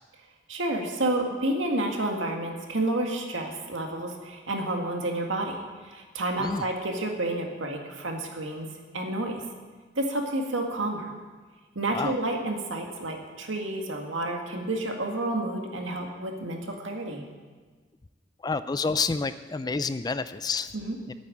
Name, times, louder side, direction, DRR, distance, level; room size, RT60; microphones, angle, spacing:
voice 1, 0.5-5.6 5.8-8.7 8.9-9.4 10.0-11.1 11.8-17.2 20.7-21.0, right 1 dB, 85° right, 2 dB, 1.9 m, -30 dB
voice 2, 18.4-20.7 21.1-21.2, left 4 dB, 20° left, 13 dB, 0.3 m, -29 dB
9.4 x 8.7 x 9.1 m, 1.4 s
head